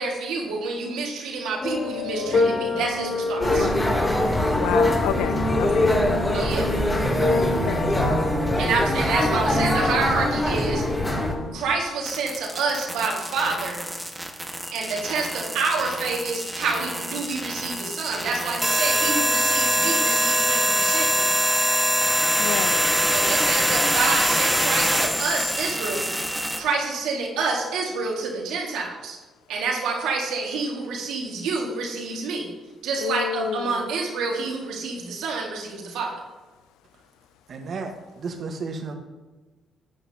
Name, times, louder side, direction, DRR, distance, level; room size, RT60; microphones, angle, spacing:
voice 1, 0.0-3.7 6.3-6.7 8.6-10.8 11.5-13.8 14.7-21.3 23.1-26.1 26.6-29.2 29.5-32.5 32.8-36.2, right 4 dB, 80° right, 2.0 m, -28 dB
sound 1, 1.6-11.5, left 3 dB, 55° left, 3.5 m, -28 dB
sound 2, 3.4-11.3, left 1 dB, 20° left, 3.0 m, -23 dB
voice 2, 4.6-6.0 7.6-8.2 22.4-22.8 33.0-33.8, left 12 dB, 85° left, 0.3 m, -30 dB
sound 3, 12.1-26.6, equal, ahead, 1.4 m, -24 dB
voice 3, 37.5-38.9, right 4 dB, 60° right, 1.4 m, -33 dB
12.0 x 8.6 x 2.9 m
supercardioid pair, 60°, 0 cm